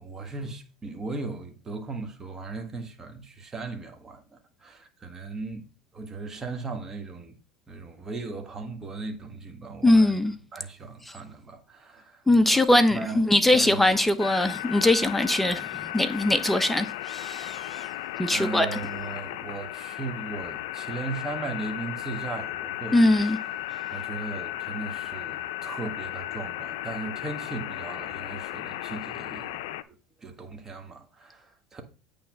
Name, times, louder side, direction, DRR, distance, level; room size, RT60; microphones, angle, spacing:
voice 1, 0.0-5.7 5.9-7.3 7.7-10.2 10.5-12.2 12.5-13.2 13.5-14.0 17.7-17.8 18.3-23.0 23.9-31.8, right 3 dB, 20° right, 1.4 m, -37 dB
voice 2, 9.8-10.3 12.3-17.8 18.2-18.7 22.9-23.4, left 1 dB, 5° left, 0.8 m, -21 dB
sound 1, 14.2-29.8, left 14 dB, 80° left, 0.5 m, -35 dB
8.6 x 3.4 x 5.9 m
supercardioid pair, 105°, 2 cm